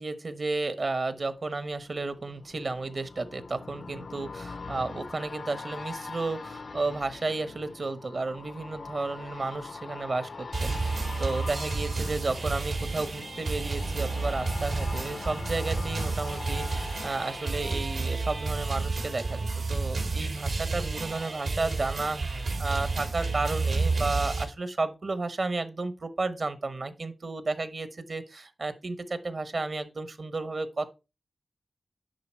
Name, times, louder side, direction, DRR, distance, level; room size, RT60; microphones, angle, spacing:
voice 1, 0.0-30.9, right 3 dB, 55° right, 1.1 m, -32 dB
sound 1, 1.4-19.1 19.4-19.5, left 4 dB, 65° left, 0.5 m, -42 dB
sound 2, 10.5-24.4, right 3 dB, 85° right, 2.6 m, -31 dB
10.5 x 4.0 x 4.6 m
wide cardioid pair, 85°, 0 cm